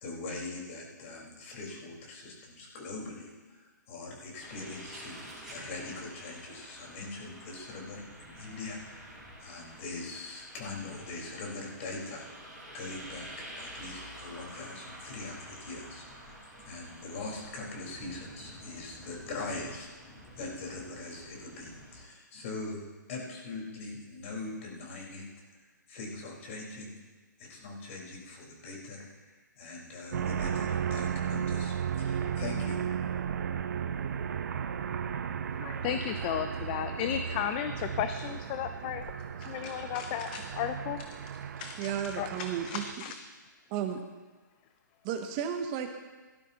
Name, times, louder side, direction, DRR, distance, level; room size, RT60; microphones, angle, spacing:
voice 1, 0.0-26.9 27.4-32.8, left 3 dB, 40° left, -2 dB, 4.3 m, -42 dB
sound 1, 4.4-22.0, right 1 dB, 5° right, 4.0 m, -49 dB
sound 2, 30.1-42.9, right 8 dB, 60° right, 0.8 m, -35 dB
voice 2, 35.6-39.0 39.4-41.0 41.6-41.7 42.2-43.1, left 9 dB, 25° left, 9 dB, 0.5 m, -34 dB
voice 3, 41.8-42.8 43.7-44.0 45.0-46.0, right 8 dB, 25° right, 6 dB, 0.8 m, -33 dB
17.5 x 12.0 x 2.9 m, 1.3 s
hypercardioid pair, 150°, 10 cm